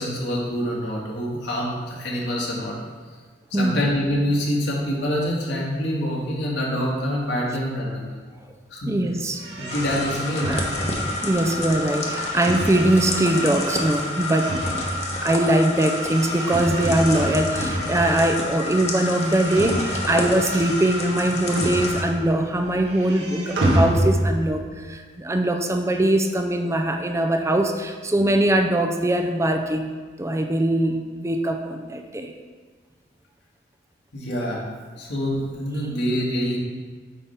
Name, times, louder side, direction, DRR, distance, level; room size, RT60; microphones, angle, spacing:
voice 1, 0.0-2.8 3.5-8.1 8.7-8.9 9.6-10.5 34.1-34.6 35.0-36.6, equal, 85° left, -4 dB, 1.8 m, -26 dB
voice 2, 8.9-9.4 10.5-14.8 15.2-29.9 30.2-32.3, right 1 dB, 15° right, 4 dB, 0.4 m, -22 dB
sound 1, 9.4-18.7 18.9-22.4 22.6-24.5, right 1 dB, 70° right, 1.5 m, -29 dB
sound 2, 9.7-22.0, left 2 dB, 40° left, 1.0 m, -29 dB
8.7 x 3.5 x 5.6 m, 1.4 s
head